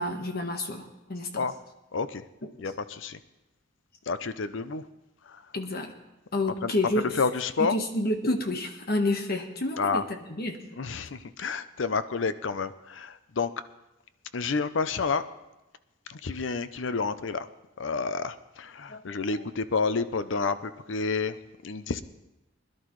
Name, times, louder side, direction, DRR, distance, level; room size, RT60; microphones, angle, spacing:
voice 1, 0.0-1.3 2.4-2.5 5.5-5.9 6.3-7.0 7.6-10.6 18.9-19.2, left 1 dB, 55° left, 5 dB, 1.3 m, -29 dB
voice 2, 1.9-2.2 2.6-3.2 4.1-4.8 5.3-5.4 6.6-7.8 9.8-10.0 10.8-13.5 14.3-15.2 16.1-17.5 17.8-22.0, left 4 dB, 70° left, 13 dB, 0.6 m, -29 dB
21.0 x 11.5 x 3.2 m, 0.98 s
head